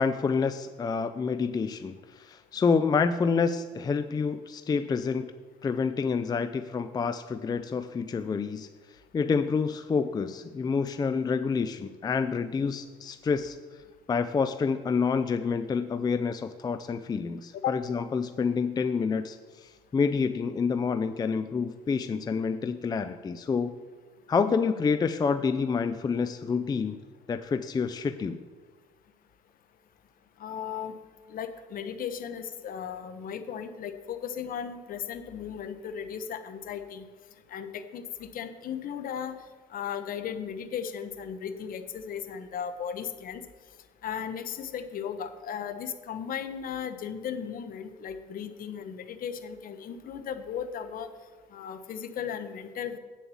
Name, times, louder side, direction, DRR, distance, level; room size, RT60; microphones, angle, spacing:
voice 1, 0.0-5.3 5.6-8.7 9.1-13.6 14.1-23.7 24.3-27.0 27.3-28.4, left 5 dB, 25° left, 10 dB, 0.4 m, -28 dB
voice 2, 30.4-30.9 31.3-37.1 37.5-39.4 39.7-43.4 44.0-51.1 51.5-53.0, left 8 dB, 55° left, 10 dB, 1.0 m, -36 dB
8.6 x 7.2 x 7.1 m, 1.4 s
cardioid pair, 110°, 17 cm